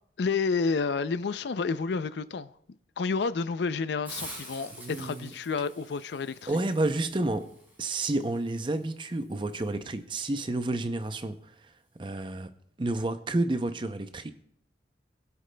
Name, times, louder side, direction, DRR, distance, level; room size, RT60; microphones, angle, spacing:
voice 1, 0.2-2.5 3.0-6.6, left 4 dB, 80° left, 0.4 m, -30 dB
Hiss, 4.0-9.7, right 1 dB, 10° right, 4.9 m, -47 dB
voice 2, 4.7-5.3 6.5-7.5 7.8-11.4 12.0-12.5 12.8-14.3, right 2 dB, 30° right, 0.5 m, -30 dB
21.0 x 8.2 x 2.2 m
head